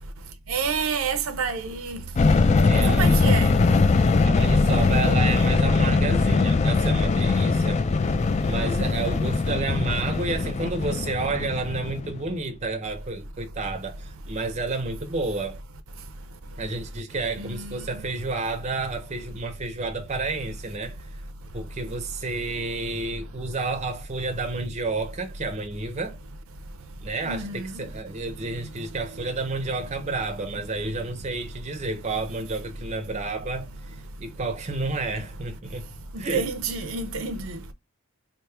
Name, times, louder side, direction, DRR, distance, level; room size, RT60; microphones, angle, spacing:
voice 1, 0.5-2.0 2.6-3.5 17.4-17.8 27.2-27.7 36.1-37.6, right 5 dB, 75° right, 0.6 m, -29 dB
sound 1, 2.2-12.4, left 3 dB, 30° left, 0.3 m, -21 dB
voice 2, 2.7-3.2 4.2-7.9 8.4-15.6 16.6-21.2 21.5-26.2 27.0-33.7 34.2-35.9 36.2-36.5, right 3 dB, 30° right, 0.6 m, -30 dB
3.4 x 2.1 x 4.3 m
head